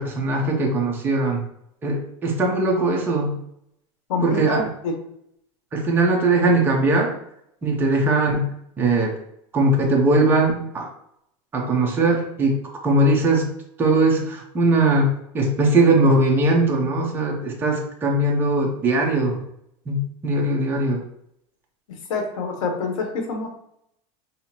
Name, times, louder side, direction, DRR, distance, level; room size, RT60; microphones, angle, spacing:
voice 1, 0.0-1.4 1.8-3.4 4.2-4.6 5.7-7.2 7.6-9.2 9.5-10.9 11.5-13.5 13.8-19.4 19.9-21.0, right 2 dB, 10° right, -1 dB, 0.7 m, -20 dB
voice 2, 4.1-4.5 4.8-5.0 21.9-23.5, left 4 dB, 80° left, 3 dB, 1.3 m, -26 dB
5.6 x 2.1 x 4.3 m, 0.75 s
supercardioid pair, 175°, 17 cm